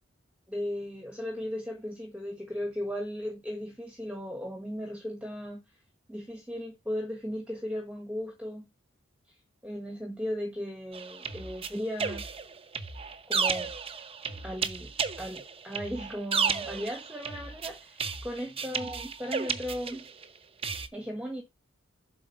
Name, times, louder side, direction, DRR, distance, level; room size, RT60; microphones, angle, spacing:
voice 1, 0.5-5.6 6.1-8.7 9.6-12.2 13.3-13.7 14.4-14.9 15.2-20.1 20.9-21.4, equal, 5° right, 1.4 m, -36 dB
sound 1, 10.9-20.2 20.6-20.9, right 5 dB, 30° right, 0.8 m, -33 dB
7.6 x 4.5 x 7.0 m
head